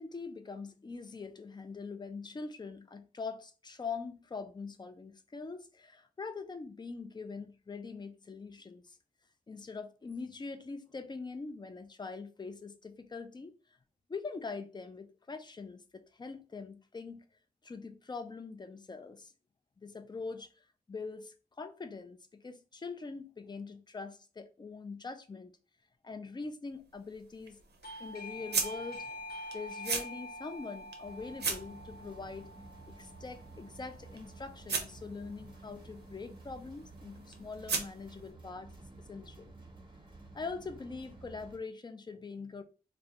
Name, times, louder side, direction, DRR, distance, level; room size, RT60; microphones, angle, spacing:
voice 1, 0.0-9.0 9.5-13.5 14.1-17.3 17.6-19.3 19.8-20.5 20.9-25.5 26.0-27.6 28.0-29.2 29.5-32.5 32.9-39.5 40.3-42.6, left 4 dB, 25° left, 0.3 m, -43 dB
sound 1, 26.7-38.3, right 4 dB, 85° right, 0.5 m, -41 dB
Doorbell, 27.8-34.3, left 1 dB, 70° left, 0.7 m, -46 dB
sound 2, 31.0-41.6, right 2 dB, 30° right, 0.6 m, -52 dB
2.3 x 2.1 x 2.7 m
wide cardioid pair, 70°, 17 cm